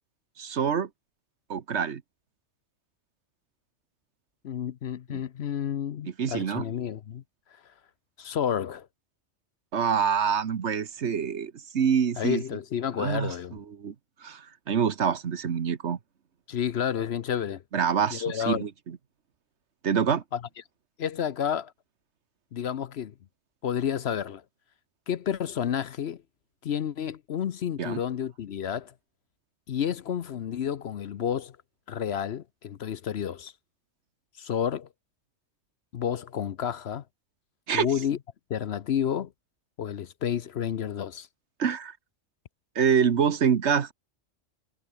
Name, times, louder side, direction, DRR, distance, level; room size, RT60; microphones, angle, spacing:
voice 1, 0.4-0.9 1.5-2.0 5.1-5.2 6.0-6.7 9.7-12.4 13.0-13.9 14.2-16.0 17.7-19.0 19.8-20.2 27.8-28.0 37.7-37.9 41.6-41.9 42.7-43.9, right 7 dB, 60° right, 1.4 m, -26 dB
voice 2, 4.4-7.2 8.2-8.9 12.2-13.6 16.5-17.6 18.1-18.6 20.3-20.4 21.0-21.7 22.5-23.1 23.6-24.4 25.1-26.2 26.6-28.9 29.7-31.5 31.9-33.5 34.4-34.9 35.9-37.0 37.7-38.2 38.5-39.3 39.8-41.3, left 9 dB, 60° left, 0.9 m, -30 dB
omnidirectional pair, 1.3 m